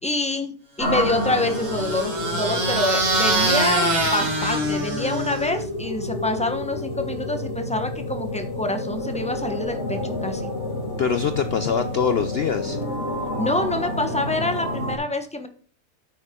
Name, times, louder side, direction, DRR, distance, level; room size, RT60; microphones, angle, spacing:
voice 1, 0.0-0.5 0.8-10.5 13.4-15.5, left 2 dB, 5° left, 0.9 m, -26 dB
sound 1, 0.8-15.0, left 1 dB, 40° left, 4.0 m, -29 dB
sound 2, 1.1-5.6, right 2 dB, 50° right, 2.5 m, -24 dB
voice 2, 11.0-12.8, left 6 dB, 75° left, 0.5 m, -23 dB
9.1 x 9.0 x 3.8 m
omnidirectional pair, 1.7 m